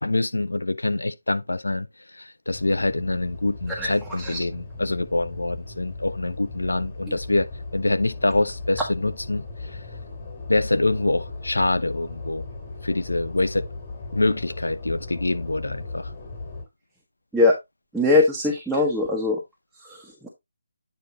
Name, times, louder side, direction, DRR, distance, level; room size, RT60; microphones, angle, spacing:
voice 1, 0.0-1.9 2.1-9.5 9.7-9.8 10.5-12.4 12.8-13.7 14.1-16.1, left 2 dB, 80° left, 0.8 m, -25 dB
sound 1, 2.5-16.6, left 3 dB, 25° left, 2.5 m, -37 dB
voice 2, 17.9-19.4 19.8-20.3, left 2 dB, ahead, 1.3 m, -21 dB
9.1 x 4.9 x 2.8 m
figure-of-eight pair, 155°, 0 cm